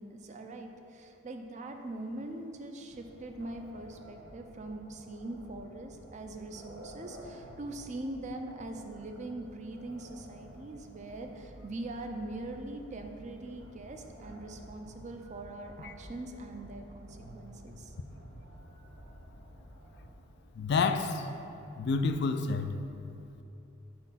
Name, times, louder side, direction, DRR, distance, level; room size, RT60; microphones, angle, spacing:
voice 1, 0.0-17.9, right 2 dB, 35° right, 4 dB, 0.4 m, -42 dB
sound 1, 2.9-20.1, equal, 80° right, 1.0 m, -51 dB
voice 2, 20.6-21.2 21.8-22.7, left 4 dB, 55° left, 8 dB, 0.3 m, -29 dB
4.9 x 4.3 x 5.5 m, 2.9 s
head